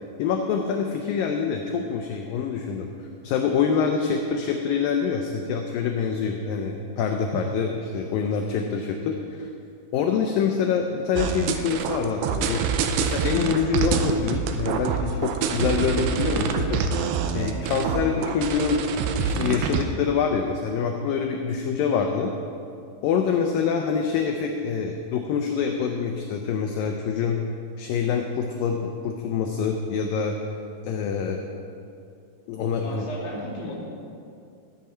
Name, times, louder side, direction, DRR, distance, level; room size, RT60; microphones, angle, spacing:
voice 1, 0.2-2.9 3.2-9.5 9.9-12.6 13.0-18.9 19.2-22.3 23.0-27.4 27.8-30.4 30.8-31.4 32.5-33.1, left 6 dB, 85° left, 3 dB, 2.0 m, -26 dB
sound 1, 11.2-19.8, right 6 dB, 90° right, 2.8 m, -26 dB
voice 2, 17.3-18.1 32.8-33.7, left 1 dB, 35° left, -10 dB, 3.2 m, -36 dB
13.0 x 9.2 x 4.4 m, 2.5 s
omnidirectional pair, 4.7 m